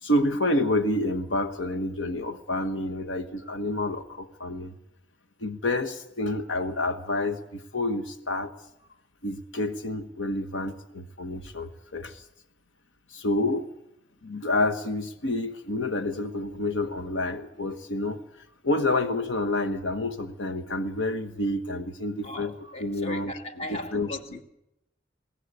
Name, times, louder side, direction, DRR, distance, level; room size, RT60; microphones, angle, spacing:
voice 1, 0.0-4.7 5.4-8.5 9.2-12.2 13.1-13.7 14.2-22.5 22.8-23.3 23.7-24.1, left 2 dB, 80° left, 1.2 m, -28 dB
voice 2, 22.2-24.4, left 2 dB, 35° left, 1.7 m, -38 dB
21.5 x 17.0 x 9.7 m
head